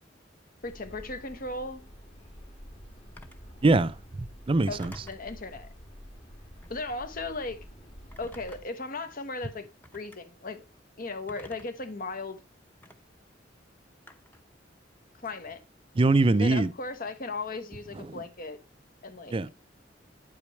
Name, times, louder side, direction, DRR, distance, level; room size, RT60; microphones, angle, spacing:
voice 1, 0.6-1.8 4.7-5.7 6.7-7.6 8.2-9.7 9.9-10.6 11.0-12.4 15.2-15.6 16.4-18.6 19.0-19.4, left 3 dB, 50° left, 1.1 m, -36 dB
sound 1, 0.6-8.6, equal, 35° left, 1.8 m, -48 dB
Telephone, 3.2-3.5 4.8-5.3 6.5-6.9 8.1-8.8 9.8-10.2 11.3-11.8 12.8-13.0 14.1-14.5, left 1 dB, 10° left, 0.9 m, -50 dB
voice 2, 3.6-4.9 16.0-16.7 18.0-18.2 19.3-19.5, right 2 dB, 30° right, 0.4 m, -23 dB
9.2 x 8.4 x 3.1 m
head